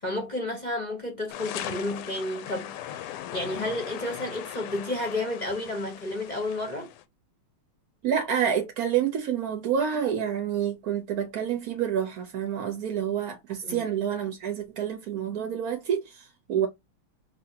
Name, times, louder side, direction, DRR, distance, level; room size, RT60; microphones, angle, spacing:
voice 1, 0.0-6.9 13.6-13.8, left 1 dB, 35° left, 0.7 m, -31 dB
sound 1, 1.3-7.0, left 11 dB, 85° left, 1.5 m, -39 dB
voice 2, 8.0-16.7, right 8 dB, 65° right, 0.9 m, -28 dB
5.8 x 2.7 x 2.7 m
omnidirectional pair, 2.4 m